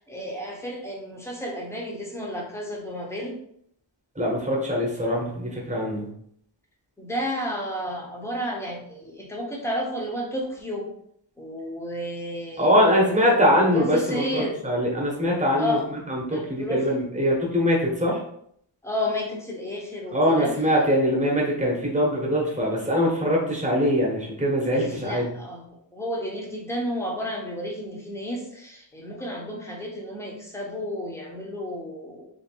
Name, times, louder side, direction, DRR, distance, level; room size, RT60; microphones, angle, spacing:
voice 1, 0.1-3.4 7.0-10.9 11.4-14.6 15.5-15.8 16.3-16.9 18.8-20.5 24.7-25.7 25.9-32.3, left 1 dB, 5° left, -2 dB, 0.8 m, -32 dB
voice 2, 4.1-6.1 12.6-15.8 16.1-18.2 20.1-25.3, equal, 15° right, -2 dB, 1.1 m, -22 dB
3.2 x 2.9 x 4.4 m, 0.69 s
wide cardioid pair, 165°, 46 cm